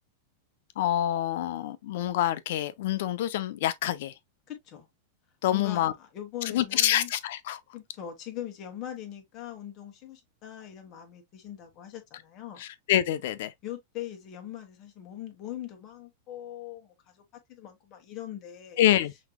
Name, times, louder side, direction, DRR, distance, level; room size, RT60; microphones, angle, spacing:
voice 1, 0.8-4.1 5.4-5.9 6.5-7.6 12.6-13.5 18.8-19.1, left 12 dB, 65° left, 0.6 m, -26 dB
voice 2, 4.5-4.9 5.5-7.1 7.7-12.6 13.6-17.2 17.5-18.8, left 11 dB, 35° left, 1.6 m, -41 dB
5.7 x 3.0 x 2.2 m
supercardioid pair, 145°, 0 cm